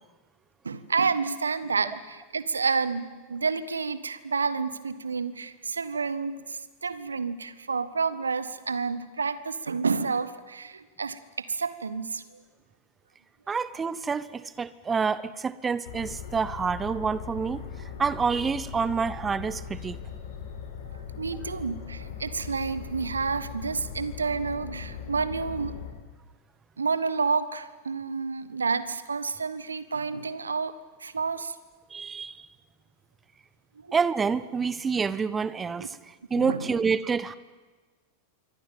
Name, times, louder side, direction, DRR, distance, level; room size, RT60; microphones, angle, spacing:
voice 1, 0.6-12.2 21.2-25.8 26.8-30.7 31.0-31.5 33.9-34.0 35.8-35.9 36.4-36.7, right 5 dB, 75° right, 15 dB, 1.4 m, -29 dB
voice 2, 13.5-17.6 18.0-20.0 31.9-32.4 33.9-36.0 36.3-37.4, right 5 dB, 15° right, 17 dB, 1.1 m, -28 dB
sound 1, 15.9-25.9, left 7 dB, 60° left, 6.0 m, -39 dB
27.0 x 23.5 x 9.3 m, 1.4 s
figure-of-eight pair, 90°, 0 cm